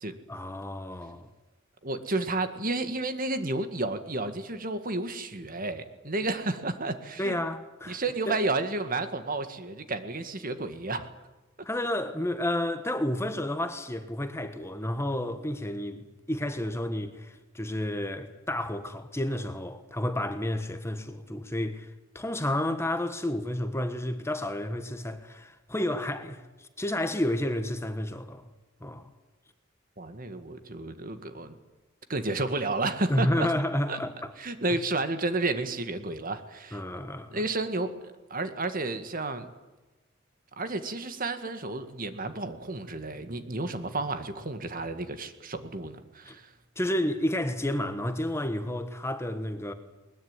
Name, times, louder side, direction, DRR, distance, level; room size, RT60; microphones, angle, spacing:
voice 1, 0.3-1.3 7.2-8.0 8.3-8.4 11.6-28.4 28.8-29.1 33.1-34.3 36.7-37.4 46.3-46.4 46.8-49.7, left 1 dB, 15° left, 1.4 m, -31 dB
voice 2, 1.8-7.4 7.9-11.1 30.0-31.6 32.1-33.5 33.9-34.0 34.4-36.8 37.3-37.9 38.3-39.5 40.6-46.5, right 2 dB, 45° right, 2.0 m, -31 dB
21.0 x 21.0 x 9.7 m
head